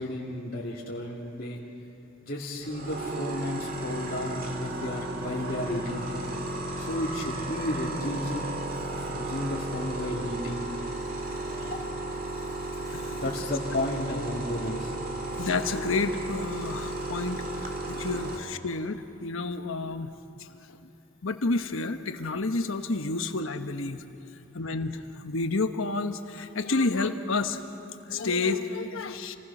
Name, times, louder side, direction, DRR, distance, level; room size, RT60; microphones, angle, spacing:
voice 1, 0.0-1.6 2.2-6.2 6.8-8.5 8.9-10.7 11.6-11.8 13.2-14.9, left 1 dB, 45° left, -5 dB, 2.4 m, -33 dB
sound 1, 2.6-18.4, right 2 dB, 45° right, 2.1 m, -34 dB
voice 2, 15.4-17.4 17.9-20.1 21.2-24.0 24.5-25.0 25.2-27.6 28.1-29.4, left 3 dB, 75° left, 8 dB, 1.2 m, -29 dB
28.5 x 19.5 x 6.1 m, 2.8 s
head